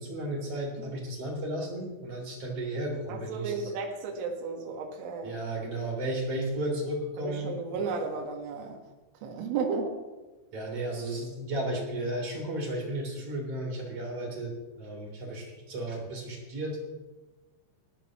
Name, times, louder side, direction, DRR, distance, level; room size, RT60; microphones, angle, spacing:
voice 1, 0.0-3.7 5.2-7.5 10.5-16.8, right 1 dB, 35° right, -1 dB, 4.1 m, -34 dB
voice 2, 3.1-5.3 7.2-8.8 9.2-10.0, right 4 dB, 85° right, 2 dB, 4.1 m, -33 dB
19.5 x 14.5 x 3.1 m, 1.2 s
omnidirectional pair, 5.6 m